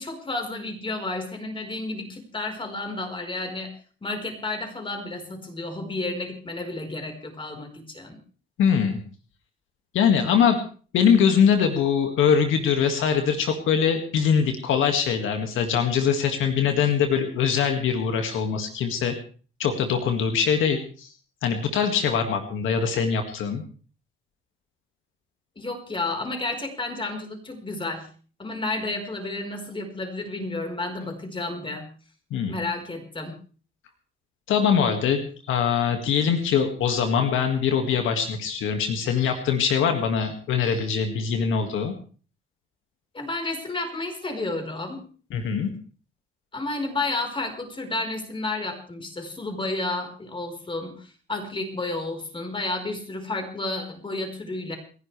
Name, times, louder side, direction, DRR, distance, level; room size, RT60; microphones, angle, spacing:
voice 1, 0.0-3.7 4.0-8.2 25.6-28.1 28.4-31.9 32.5-33.4 43.1-45.0 46.5-54.8, left 2 dB, 25° left, 4 dB, 4.4 m, -31 dB
voice 2, 8.6-9.0 9.9-10.6 10.9-19.2 19.6-21.1 21.4-23.6 32.3-32.6 34.5-41.9 45.3-45.7, left 7 dB, 85° left, 5 dB, 2.0 m, -22 dB
29.0 x 11.0 x 3.3 m, 0.40 s
cardioid pair, 90°, 20 cm